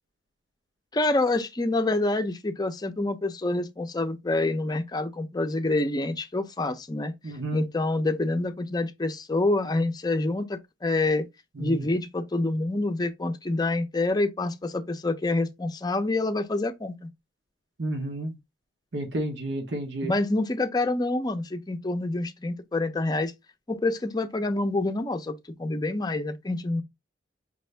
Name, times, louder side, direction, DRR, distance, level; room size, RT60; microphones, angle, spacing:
voice 1, 0.9-7.1 7.5-11.3 11.6-17.1 20.1-23.3 23.7-26.8, left 2 dB, 25° left, 0.6 m, -27 dB
voice 2, 7.2-7.6 11.6-11.8 17.8-18.3 18.9-20.1, right 1 dB, 75° right, 1.0 m, -31 dB
5.3 x 2.6 x 3.3 m
head